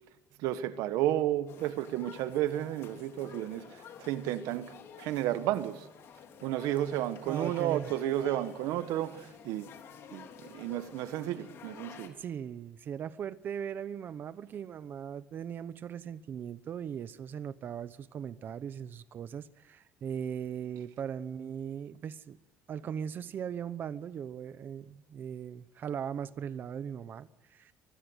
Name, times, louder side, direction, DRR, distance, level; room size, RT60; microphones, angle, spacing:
voice 1, 0.4-5.9 6.4-9.7 10.1-12.1, right 13 dB, 90° right, 1.4 m, -32 dB
sound 1, 1.5-12.1, left 7 dB, 50° left, 3.3 m, -51 dB
voice 2, 7.3-7.9 12.1-22.4 22.7-27.7, right 8 dB, 35° right, 1.0 m, -39 dB
24.5 x 20.5 x 8.1 m
cardioid pair, 170°, 6 cm